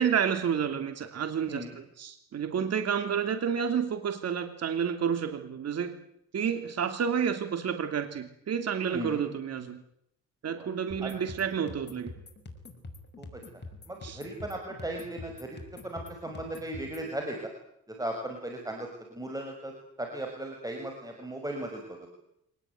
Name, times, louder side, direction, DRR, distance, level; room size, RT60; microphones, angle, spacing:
voice 1, 0.0-1.6 2.0-6.0 6.3-9.8 10.4-12.1 14.0-14.2, right 7 dB, 55° right, 8 dB, 2.9 m, -30 dB
voice 2, 8.9-9.2 10.5-10.7 11.0-11.2 13.2-13.4 13.9-17.5 17.9-19.7 20.0-22.1, right 1 dB, 10° right, 3 dB, 6.1 m, -37 dB
sound 1, 10.9-17.1, left 2 dB, 35° left, 6.0 m, -45 dB
25.5 x 19.5 x 9.5 m, 0.75 s
cardioid pair, 90°, 30 cm